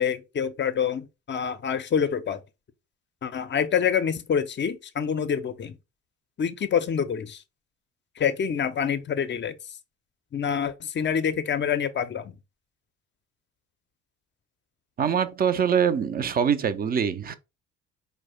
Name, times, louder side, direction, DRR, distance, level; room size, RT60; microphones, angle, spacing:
voice 1, 0.0-2.4 3.2-5.8 6.4-7.4 8.2-9.5 10.3-12.4, left 7 dB, 25° left, 0.5 m, -26 dB
voice 2, 15.0-17.4, right 7 dB, 25° right, 0.4 m, -24 dB
4.6 x 2.1 x 4.2 m
figure-of-eight pair, 45°, 43 cm